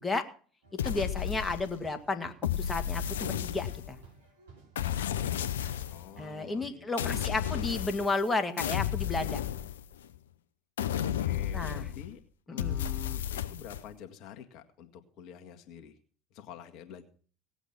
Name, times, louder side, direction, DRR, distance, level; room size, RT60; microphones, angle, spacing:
sound 1, 0.6-6.7, right 3 dB, 75° right, 4.8 m, -56 dB
sound 2, 0.8-1.9 2.4-4.1 4.8-6.1 7.0-8.3 8.6-10.2 10.8-12.1 12.6-13.8, left 10 dB, 75° left, 0.9 m, -33 dB
voice 1, 0.8-4.0 6.2-9.4 11.5-11.9 12.5-12.8, left 3 dB, 15° left, 5 dB, 2.1 m, -33 dB
voice 2, 5.9-7.7 11.2-12.2 12.5-15.9 16.3-17.0, left 9 dB, 55° left, 4 dB, 1.9 m, -47 dB
18.0 x 8.2 x 5.9 m, 0.42 s
hypercardioid pair, 70°, 0 cm